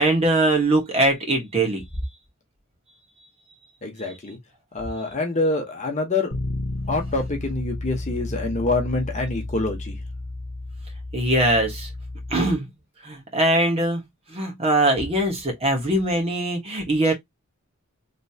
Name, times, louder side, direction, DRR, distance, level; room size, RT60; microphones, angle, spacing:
voice 1, 0.0-1.8 11.1-11.9 12.3-12.7 13.0-14.0 14.3-17.1, right 1 dB, 30° right, 1.5 m, -21 dB
voice 2, 3.8-4.4 4.7-6.3 6.9-10.0, left 2 dB, 35° left, 1.1 m, -26 dB
Bass guitar, 6.3-12.6, left 2 dB, 85° left, 0.9 m, -32 dB
3.2 x 2.9 x 2.8 m
head